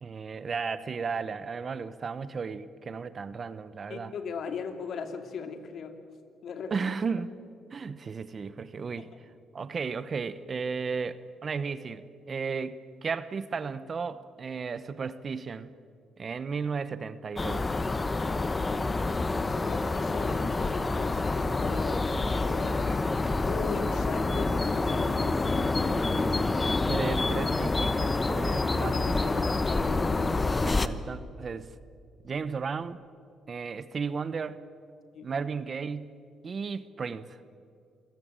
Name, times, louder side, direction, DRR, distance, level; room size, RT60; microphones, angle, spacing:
voice 1, 0.0-4.1 6.7-7.3 7.7-9.1 9.5-15.7 16.2-17.7 26.8-29.3 30.6-31.7 32.2-33.0 33.5-34.6 35.2-36.1 36.4-37.3, right 5 dB, 40° right, 14 dB, 1.0 m, -34 dB
voice 2, 3.9-6.0 6.4-6.9 9.0-9.2 19.4-23.0 23.5-25.5 28.8-30.3 35.1-35.3, left 5 dB, 65° left, 7 dB, 2.5 m, -39 dB
sound 1, 17.4-30.9, left 3 dB, 25° left, 1.0 m, -27 dB
27.5 x 17.0 x 9.0 m, 2.4 s
cardioid pair, 90°, 0 cm